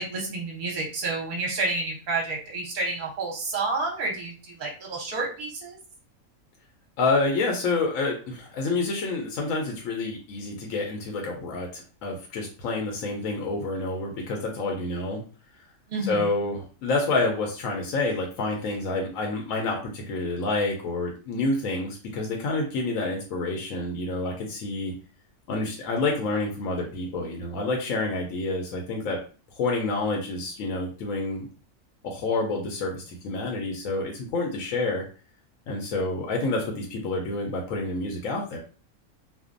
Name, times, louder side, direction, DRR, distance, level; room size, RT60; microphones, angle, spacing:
voice 1, 0.0-5.8 15.9-16.3, right 3 dB, 45° right, -2 dB, 0.8 m, -30 dB
voice 2, 7.0-15.2 16.0-24.9 25.5-29.2 29.6-31.5 32.0-35.0 35.7-38.6, left 3 dB, 70° left, 1 dB, 0.9 m, -28 dB
2.5 x 2.2 x 2.4 m, 0.37 s
omnidirectional pair, 1.5 m